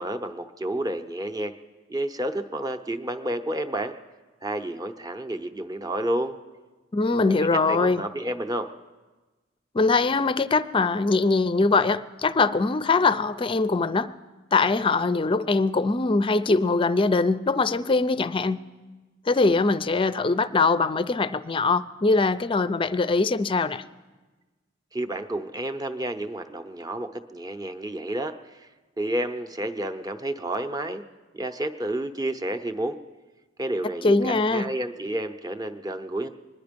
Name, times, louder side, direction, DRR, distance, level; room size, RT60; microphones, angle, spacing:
voice 1, 0.0-1.5 1.9-3.9 4.4-6.4 7.3-8.7 24.9-28.7 29.0-31.0 31.3-33.0 33.6-36.3, right 1 dB, 20° right, 7 dB, 0.7 m, -30 dB
voice 2, 6.9-8.0 9.7-14.1 14.5-18.6 19.3-23.8 34.0-34.7, left 3 dB, 25° left, 14 dB, 0.4 m, -22 dB
24.5 x 10.5 x 5.2 m, 1.2 s
head